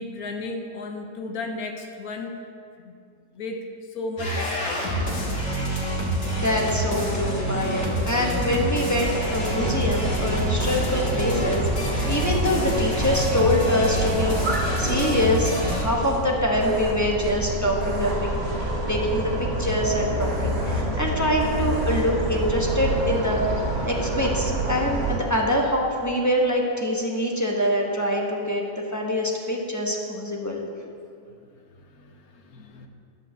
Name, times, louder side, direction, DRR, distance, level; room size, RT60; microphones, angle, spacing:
voice 1, 0.0-2.4 2.8-2.9 3.3-5.1 31.3-31.5 31.8-32.9, left 3 dB, 75° left, 4 dB, 1.3 m, -34 dB
sound 1, 4.2-15.8, right 1 dB, 50° left, 2.1 m, -27 dB
voice 2, 6.4-18.3 18.9-23.4 23.8-28.6 28.9-30.6, left 1 dB, 15° left, -1 dB, 1.0 m, -25 dB
sound 2, 9.0-25.2, right 1 dB, 85° right, 1.9 m, -28 dB
sound 3, 9.4-9.5 10.6-10.7 13.0-13.2 14.2-14.4 16.6-16.9 17.8-18.1 20.2-20.8 21.4-22.0, right 2 dB, 50° right, 2.1 m, -38 dB
11.5 x 5.1 x 7.6 m, 2.4 s
omnidirectional pair, 1.6 m